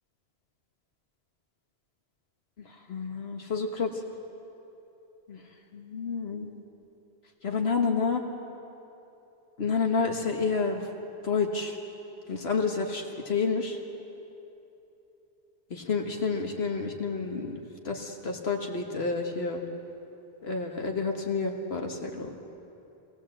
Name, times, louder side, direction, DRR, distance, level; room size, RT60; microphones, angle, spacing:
voice 1, 2.6-3.9 5.3-5.4 5.7-6.5 7.4-8.2 9.6-10.9 11.2-11.8 12.3-13.8 15.7-19.6 20.4-22.4, left 4 dB, 80° left, 2 dB, 1.6 m, -29 dB
25.0 x 18.5 x 7.7 m, 3.0 s
omnidirectional pair, 1.0 m